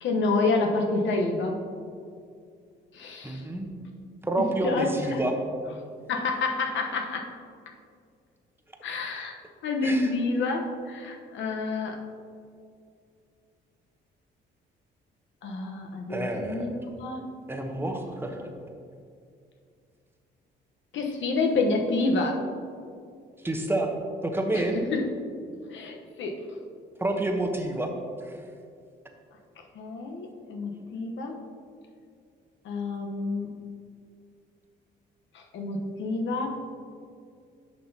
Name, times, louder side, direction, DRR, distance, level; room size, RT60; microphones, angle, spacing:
voice 1, 0.0-1.6 2.9-3.4 4.4-5.2 6.1-7.3 8.8-9.3 9.6-12.0 15.4-17.2 20.9-22.4 24.5-24.6 24.9-25.1 25.7-26.4 29.7-31.4 32.6-33.5 35.3-36.6, left 3 dB, 70° left, 2 dB, 1.0 m, -28 dB
voice 2, 3.2-3.7 4.2-5.3 9.8-10.1 16.1-16.6 17.5-18.5 23.4-23.9 24.2-24.8 27.0-27.9 28.2-28.4, right 1 dB, 10° right, 3 dB, 0.9 m, -28 dB
9.3 x 5.8 x 2.8 m, 2.3 s
cardioid pair, 90°, 20 cm